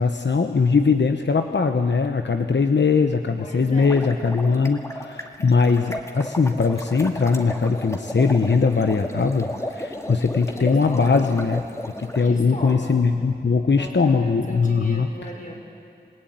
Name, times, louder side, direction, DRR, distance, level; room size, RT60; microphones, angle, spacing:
voice 1, 0.0-11.6 12.0-15.1, left 4 dB, 90° left, 5 dB, 1.0 m, -20 dB
voice 2, 3.4-4.1 10.4-11.4 12.2-13.1 13.8-15.5, left 1 dB, 45° left, 0 dB, 5.5 m, -37 dB
sound 1, 3.7-12.2, left 1 dB, 15° left, 1.9 m, -34 dB
28.0 x 19.0 x 9.4 m, 2.5 s
wide cardioid pair, 65°, 18 cm